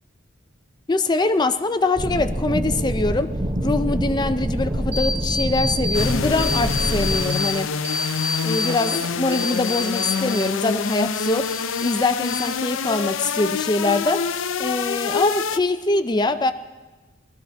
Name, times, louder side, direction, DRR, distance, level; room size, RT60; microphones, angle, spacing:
voice 1, 0.9-3.3 3.6-7.7 8.4-11.5 11.8-14.2 14.6-16.5, left 2 dB, 20° left, 10 dB, 0.5 m, -23 dB
sound 1, 2.0-7.2, equal, 25° right, 0.8 m, -25 dB
sound 2, 4.9-6.1 6.4-7.5 7.8-10.5 10.8-11.9 12.2-12.8, left 3 dB, 55° right, 1.5 m, -28 dB
sound 3, 5.9-15.6, left 6 dB, 80° left, 0.5 m, -26 dB
21.0 x 14.0 x 3.4 m, 1.2 s
head